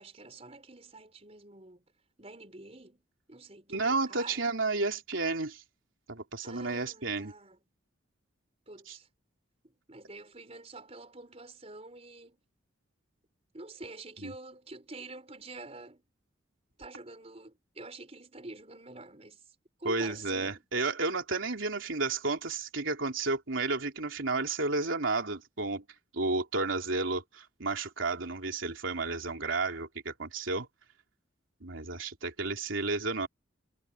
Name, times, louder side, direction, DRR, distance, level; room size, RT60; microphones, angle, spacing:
voice 1, 0.0-1.9 2.2-3.0 3.3-4.4 6.4-7.6 8.7-9.1 9.6-12.4 13.5-16.0 16.8-19.4 19.8-20.6, right 2 dB, 30° right, 4.9 m, -47 dB
voice 2, 3.7-5.6 6.1-7.3 8.9-9.0 14.2-14.3 19.8-25.8 26.1-30.7 31.6-33.3, right 3 dB, 85° right, 3.3 m, -32 dB
head